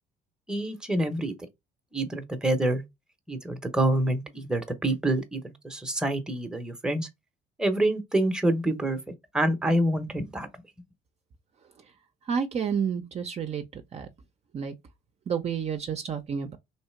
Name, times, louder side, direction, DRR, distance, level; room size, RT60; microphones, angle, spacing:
voice 1, 0.5-1.3 1.9-2.8 3.3-7.1 7.6-9.0 9.3-10.5, right 1 dB, 5° right, 0.8 m, -26 dB
voice 2, 12.3-14.1 14.5-14.7 15.3-16.6, right 7 dB, 40° right, 0.6 m, -30 dB
3.2 x 2.7 x 4.3 m
cardioid pair, 110°, 17 cm